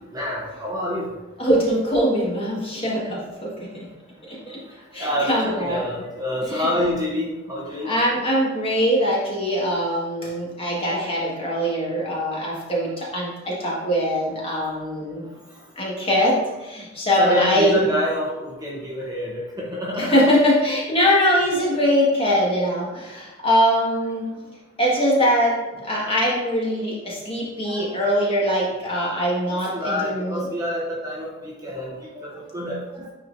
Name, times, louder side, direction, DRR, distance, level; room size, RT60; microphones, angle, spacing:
voice 1, 0.1-1.1 5.0-7.9 17.2-20.2 27.6-27.8 28.5-28.6 29.5-31.3 31.6-33.1, left 1 dB, 20° right, -3 dB, 0.9 m, -27 dB
voice 2, 1.4-3.9 4.3-4.6 4.9-5.8 6.4-6.7 7.8-15.2 15.8-17.8 20.0-24.3 24.8-30.5, equal, 30° left, -4 dB, 1.8 m, -22 dB
9.8 x 4.3 x 2.7 m, 1.1 s
head